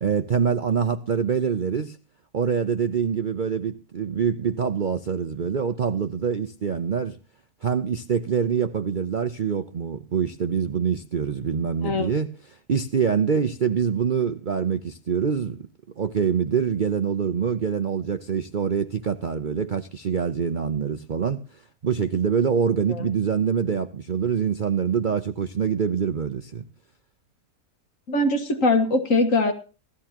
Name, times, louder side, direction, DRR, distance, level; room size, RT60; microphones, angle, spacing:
voice 1, 0.0-2.0 2.3-7.2 7.6-12.3 12.7-15.7 16.0-26.6, right 7 dB, 50° right, 0.6 m, -25 dB
voice 2, 28.1-29.5, left 2 dB, 55° left, 2.0 m, -21 dB
17.0 x 13.5 x 2.9 m
omnidirectional pair, 1.6 m